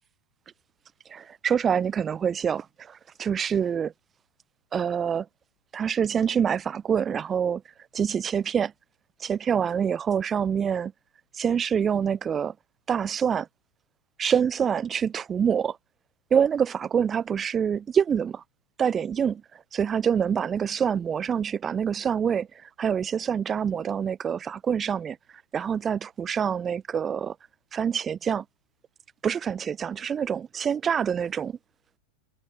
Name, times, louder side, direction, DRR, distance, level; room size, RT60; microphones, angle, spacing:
voice 1, 1.1-3.9 4.7-5.3 5.7-7.6 7.9-8.7 9.2-10.9 11.3-12.5 12.9-13.5 14.2-15.8 16.3-18.4 18.8-19.4 19.7-22.5 22.8-25.2 25.5-27.3 27.7-28.4 29.2-31.5, right 7 dB, 20° right, 5.9 m, -26 dB
figure-of-eight pair, 90°, 0 cm